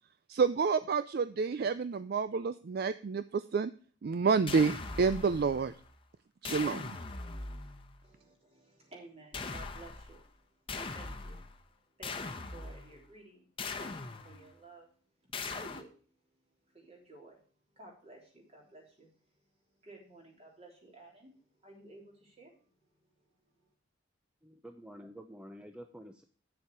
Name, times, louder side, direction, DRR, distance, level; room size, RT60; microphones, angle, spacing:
voice 1, 0.3-3.7 4.0-4.7 5.0-5.7 6.4-6.8, right 5 dB, 50° right, 13 dB, 0.4 m, -29 dB
sound 1, 4.5-6.0 6.4-8.0 9.3-10.3 10.7-11.6 12.0-13.0 13.6-14.6 15.3-15.8, left 3 dB, 25° left, 1.0 m, -41 dB
voice 2, 8.0-13.5 13.8-14.9 15.2-17.4 17.7-22.7 23.0-23.7, right 2 dB, 30° right, 0 dB, 3.5 m, -55 dB
voice 3, 24.4-26.2, equal, 5° right, 5 dB, 0.6 m, -49 dB
9.1 x 7.0 x 4.8 m, 0.42 s
head